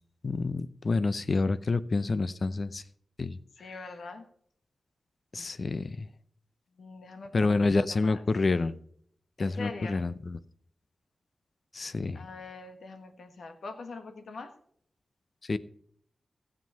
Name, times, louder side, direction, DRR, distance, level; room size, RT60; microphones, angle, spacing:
voice 1, 0.2-2.8 3.2-3.4 5.3-6.1 7.3-8.7 9.4-10.4 11.7-12.3 15.5-15.6, left 3 dB, 40° left, 0.5 m, -28 dB
voice 2, 3.6-4.2 6.8-7.6 7.9-8.2 9.4-10.0 12.1-14.5, left 3 dB, 75° left, 1.5 m, -43 dB
15.5 x 7.6 x 5.5 m
wide cardioid pair, 150°, 0 cm